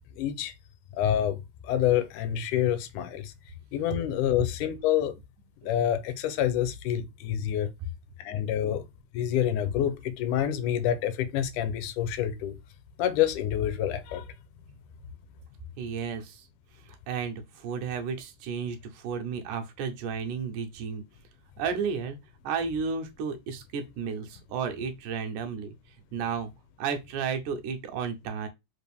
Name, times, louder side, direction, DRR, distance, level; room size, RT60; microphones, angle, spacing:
voice 1, 0.1-0.5 0.9-1.4 1.6-3.3 3.7-5.1 5.6-7.7 8.2-8.8 9.1-12.6 13.0-14.2, left 10 dB, 80° left, 2.1 m, -27 dB
voice 2, 15.8-16.5 16.8-21.0 21.6-22.2 22.4-26.5 26.8-28.5, right 6 dB, 85° right, 2.2 m, -33 dB
5.1 x 2.5 x 3.4 m
omnidirectional pair, 3.6 m